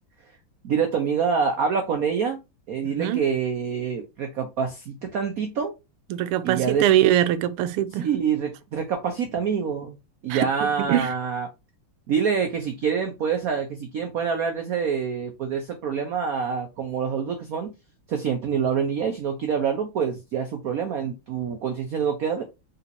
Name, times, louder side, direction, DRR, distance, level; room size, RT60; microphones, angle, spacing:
voice 1, 0.6-2.4 2.7-5.7 6.4-6.9 7.9-10.0 10.2-11.5 12.1-17.7 18.1-22.4, right 6 dB, 60° right, 0.9 m, -26 dB
voice 2, 2.9-3.2 6.1-8.1 10.3-11.1, right 12 dB, 90° right, 1.6 m, -22 dB
4.3 x 4.1 x 2.6 m
omnidirectional pair, 2.4 m